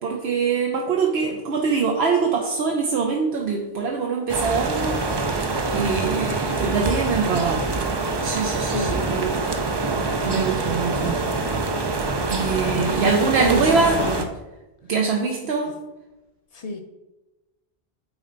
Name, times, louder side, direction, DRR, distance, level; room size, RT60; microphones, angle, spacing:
voice 1, 0.0-5.0 5.7-7.7 8.2-9.6 10.2-11.2 12.3-14.0 14.9-15.7, right 5 dB, 80° right, 0 dB, 1.0 m, -23 dB
sound 1, 4.3-14.3, right 3 dB, 35° right, 0.4 m, -25 dB
voice 2, 8.6-9.0 10.9-11.4 12.6-14.2 15.6-15.7 16.5-16.8, left 2 dB, 45° left, 6 dB, 0.6 m, -30 dB
7.3 x 4.3 x 3.9 m, 1.0 s
omnidirectional pair, 1.1 m